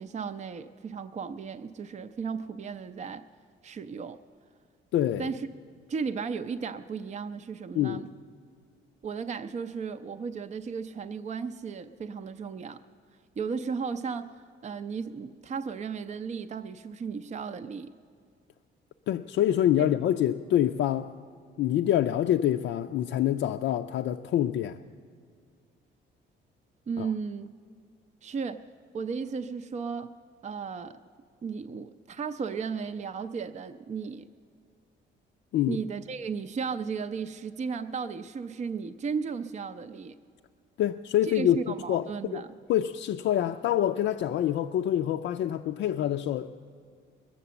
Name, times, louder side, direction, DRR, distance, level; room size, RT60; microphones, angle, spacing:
voice 1, 0.0-3.2 3.6-4.2 5.2-5.5 5.9-8.1 9.0-12.8 13.4-17.9 26.9-27.5 28.2-28.6 28.9-30.1 30.4-31.0 31.4-34.3 35.6-40.2 41.2-42.5, right 5 dB, 35° right, 0.5 m, -35 dB
voice 2, 4.9-5.3 7.8-8.0 19.1-21.1 21.6-24.8 27.0-27.1 35.5-35.8 40.8-41.6 41.9-42.4 42.7-46.5, left 11 dB, 70° left, 0.4 m, -26 dB
21.5 x 7.5 x 7.0 m
cardioid pair, 90°, 20 cm